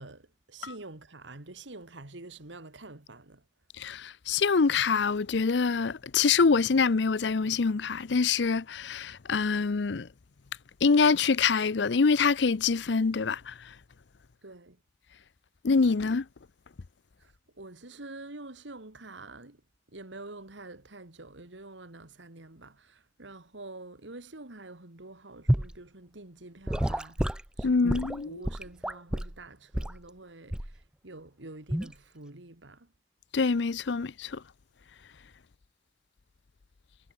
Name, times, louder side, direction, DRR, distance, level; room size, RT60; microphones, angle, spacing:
voice 1, 0.0-3.4 14.4-14.8 17.2-17.3 17.6-19.6 19.9-32.9, right 2 dB, 90° right, 2.5 m, -47 dB
voice 2, 3.8-10.1 10.8-13.7 15.6-16.3 27.6-28.4 33.3-34.4, left 5 dB, 70° left, 0.6 m, -25 dB
Gurgling / Sink (filling or washing) / Liquid, 25.5-25.8 26.7-29.4 29.7-30.0 30.5-30.8 31.7-31.9, right 1 dB, 5° right, 0.3 m, -29 dB
head